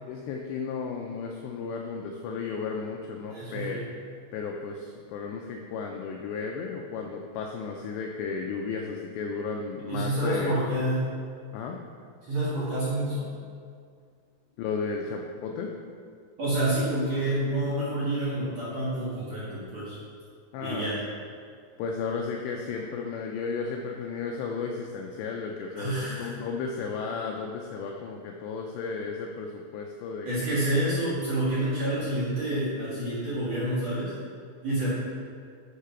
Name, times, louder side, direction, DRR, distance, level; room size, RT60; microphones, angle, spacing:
voice 1, 0.1-3.8 4.3-10.6 11.5-11.8 14.6-15.7 20.5-20.9 21.8-30.3 32.0-32.1 34.8-34.9, left 5 dB, 80° left, 1 dB, 2.6 m, -34 dB
voice 2, 3.3-3.8 9.9-11.1 12.2-13.3 16.4-20.0 20.6-21.0 25.8-26.3 30.3-34.1 34.6-34.9, right 1 dB, 50° right, -10 dB, 2.3 m, -28 dB
7.5 x 6.6 x 5.8 m, 2.1 s
omnidirectional pair, 5.6 m